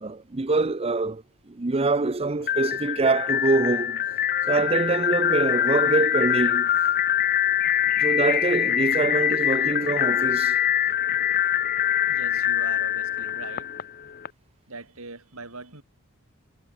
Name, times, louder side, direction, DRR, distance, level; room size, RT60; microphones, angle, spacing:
voice 1, 0.0-1.2 1.5-4.0 4.5-6.7 8.0-10.6, right 3 dB, 25° right, 0.7 m, -24 dB
sound 1, 2.4-14.3, left 10 dB, 40° left, 0.6 m, -24 dB
voice 2, 12.1-13.7 14.7-15.8, right 3 dB, 70° right, 4.1 m, -41 dB
head